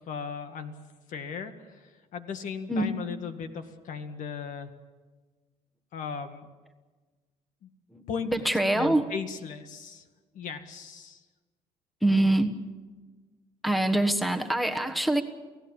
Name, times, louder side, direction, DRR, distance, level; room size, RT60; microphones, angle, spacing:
voice 1, 0.1-0.8 1.1-4.7 5.9-6.5 7.6-7.7 8.1-8.3 8.7-10.0 10.3-11.2, left 6 dB, 65° left, 7 dB, 2.0 m, -37 dB
voice 2, 7.9-9.0 12.0-12.5 13.6-15.2, right 1 dB, ahead, 9 dB, 1.3 m, -24 dB
30.0 x 16.5 x 7.2 m, 1.3 s
cardioid pair, 125°, 14 cm